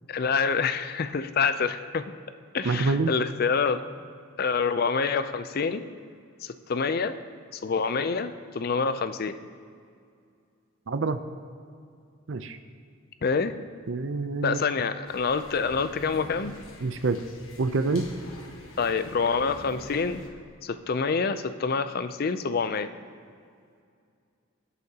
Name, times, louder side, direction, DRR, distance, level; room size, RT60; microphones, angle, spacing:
voice 1, 0.1-2.1 2.5-3.8 4.4-5.8 6.4-7.2 7.5-9.4 13.2-13.5 14.4-16.6 18.8-20.2 20.6-22.9, left 5 dB, 45° left, 11 dB, 0.4 m, -27 dB
voice 2, 2.7-3.1 10.9-11.2 12.3-12.6 13.9-14.6 16.8-17.2 17.6-18.1, right 3 dB, 60° right, 10 dB, 0.5 m, -26 dB
sound 1, 15.1-20.3, left 1 dB, 70° left, 1.3 m, -45 dB
19.0 x 8.3 x 2.8 m, 2.3 s
head